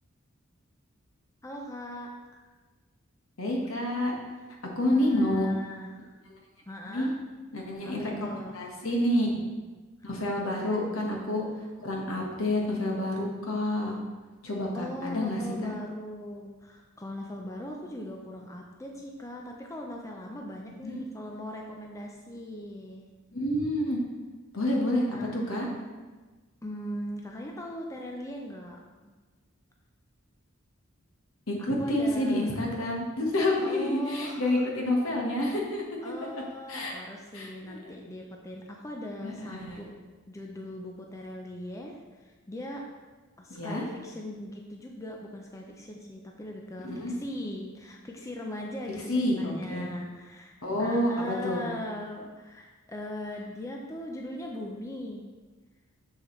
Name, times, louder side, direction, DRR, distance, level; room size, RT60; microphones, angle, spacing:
voice 1, 1.4-2.4 4.9-6.1 6.7-7.2 7.8-8.6 10.7-10.8 14.7-23.1 25.1-25.4 26.6-28.8 31.8-32.5 33.6-34.7 36.0-39.9 40.3-42.8 43.4-55.3, left 1 dB, 15° left, 0 dB, 0.5 m, -40 dB
voice 2, 3.4-4.1 4.8-5.5 6.9-7.1 7.5-9.4 10.0-11.4 11.8-13.9 14.4-15.7 20.8-21.0 23.3-24.0 24.5-25.0 25.3-25.7 31.5-36.1 36.7-36.9 37.3-37.9 39.2-39.8 43.5-43.8 46.8-47.1 49.1-49.9 50.6-51.6, left 1 dB, 70° left, -1 dB, 1.4 m, -28 dB
6.6 x 6.5 x 3.2 m, 1.3 s
head